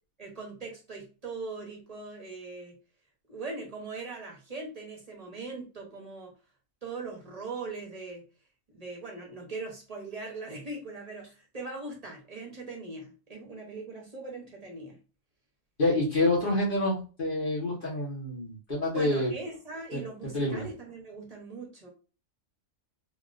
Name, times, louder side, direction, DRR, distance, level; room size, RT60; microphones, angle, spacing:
voice 1, 0.2-2.7 3.3-6.3 6.8-8.2 8.7-15.0 18.9-21.9, right 3 dB, 35° right, -1 dB, 0.8 m, -40 dB
voice 2, 15.8-19.3 19.9-20.0 20.3-20.6, left 2 dB, 40° left, -6 dB, 1.2 m, -27 dB
3.5 x 2.4 x 2.4 m, 0.35 s
omnidirectional pair, 1.4 m